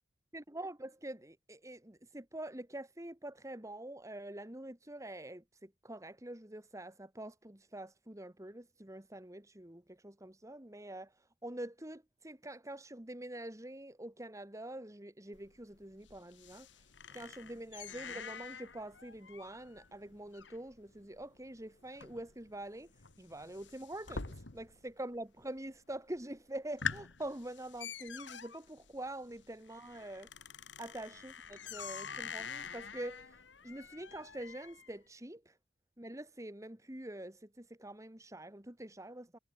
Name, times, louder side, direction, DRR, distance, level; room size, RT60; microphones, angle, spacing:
voice 1, 0.3-11.1 11.4-16.7 17.1-22.9 23.2-30.3 30.8-33.4 33.6-35.5 36.0-39.4, right 1 dB, 15° right, 1.9 m, -45 dB
sound 1, 15.3-24.9 25.2-25.8 26.2-26.3 26.6-34.9, left 6 dB, 75° left, 2.0 m, -46 dB
head